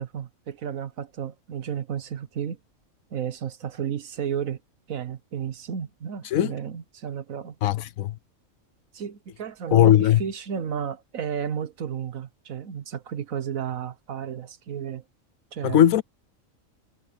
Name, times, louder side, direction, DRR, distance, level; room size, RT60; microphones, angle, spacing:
voice 1, 0.0-2.6 3.1-4.6 4.9-7.5 8.9-15.0 15.5-15.8, right 8 dB, 80° right, 1.5 m, -32 dB
voice 2, 7.6-8.2 9.7-10.2 15.6-16.0, left 11 dB, 80° left, 1.1 m, -19 dB
omnidirectional pair, 1.4 m